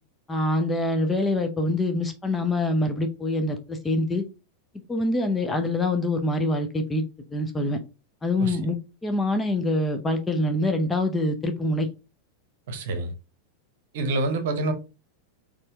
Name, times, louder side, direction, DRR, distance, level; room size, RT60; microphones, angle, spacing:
voice 1, 0.3-4.2 4.9-7.0 7.3-7.8 8.2-11.9, left 1 dB, 10° left, 0.7 m, -25 dB
voice 2, 12.7-13.1 13.9-14.7, right 2 dB, 55° right, 0.9 m, -26 dB
4.3 x 3.1 x 3.6 m
figure-of-eight pair, 90°, 0 cm